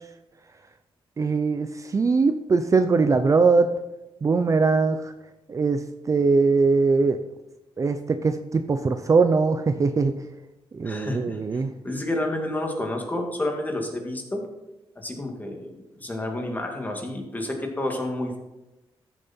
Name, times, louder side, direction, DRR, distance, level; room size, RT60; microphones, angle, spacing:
voice 1, 1.2-3.7 4.2-5.1 5.5-5.8 6.1-7.2 7.8-10.1 10.7-11.7, right 4 dB, 35° right, 9 dB, 0.6 m, -21 dB
voice 2, 10.8-11.4 11.8-14.4 15.0-18.4, left 1 dB, 15° left, 2 dB, 2.1 m, -30 dB
13.5 x 7.2 x 4.4 m, 0.99 s
cardioid pair, 120°, 10 cm